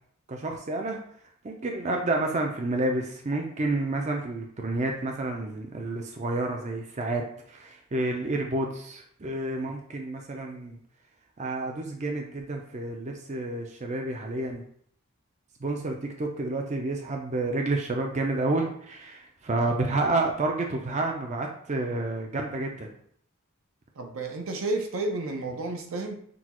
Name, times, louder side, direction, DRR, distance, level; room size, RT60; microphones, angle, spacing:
voice 1, 0.3-1.0 1.4-10.8 11.4-14.6 15.6-22.9, right 2 dB, 35° right, 2 dB, 0.5 m, -30 dB
voice 2, 24.0-26.2, right 2 dB, 75° right, 4 dB, 0.7 m, -31 dB
6.1 x 2.3 x 2.9 m, 0.62 s
head